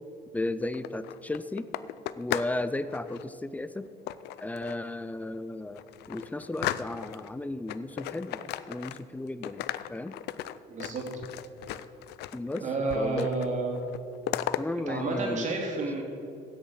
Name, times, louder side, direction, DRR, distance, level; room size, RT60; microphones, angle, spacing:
voice 1, 0.3-1.7 2.2-3.9 4.4-5.8 6.1-8.4 8.7-10.1 12.3-12.6 13.0-13.3 14.6-15.5, left 2 dB, 10° left, 14 dB, 0.5 m, -34 dB
sound 1, 0.6-2.6 2.9-3.3 4.1-4.9 5.3-5.4 5.8-7.3 7.7-9.2 9.4-12.6 12.9-13.5 13.8-14.6, left 14 dB, 80° left, 0.5 m, -36 dB
voice 2, 10.7-11.0 12.6-13.8 14.9-16.0, right 3 dB, 45° right, 1 dB, 2.8 m, -30 dB
15.5 x 6.9 x 6.4 m, 2.7 s
cardioid pair, 110°, 17 cm